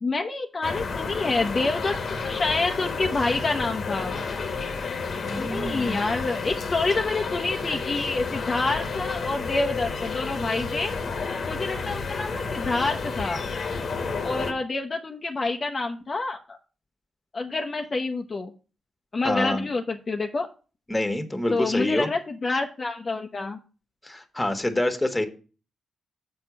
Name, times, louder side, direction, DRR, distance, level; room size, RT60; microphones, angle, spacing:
voice 1, 0.0-1.9 2.2-4.1 5.4-10.9 11.5-13.5 14.2-16.6 17.3-18.5 19.1-20.5 21.5-23.6, left 3 dB, 40° left, 3 dB, 0.8 m, -27 dB
sound 1, 0.6-14.5, left 4 dB, 60° left, 1.2 m, -31 dB
voice 2, 5.1-6.0 19.2-19.6 20.9-22.1 24.0-25.3, left 1 dB, 15° left, 8 dB, 1.5 m, -26 dB
7.3 x 4.5 x 6.1 m, 0.35 s
cardioid pair, 60°, 0 cm